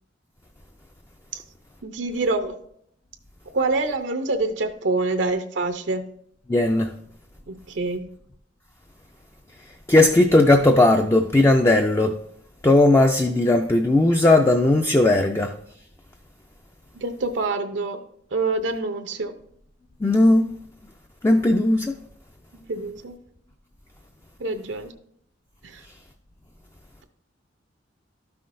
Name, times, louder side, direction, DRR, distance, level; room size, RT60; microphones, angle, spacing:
voice 1, 1.8-2.6 3.5-6.1 7.5-8.1 16.9-18.0 18.3-19.4 22.5-23.2 24.4-24.9 25.6-25.8, right 3 dB, 80° right, 0.7 m, -26 dB
voice 2, 6.5-6.9 9.9-12.2 12.6-15.5 20.0-20.5 21.2-21.9, left 2 dB, 15° left, 0.4 m, -17 dB
12.5 x 5.7 x 2.6 m
head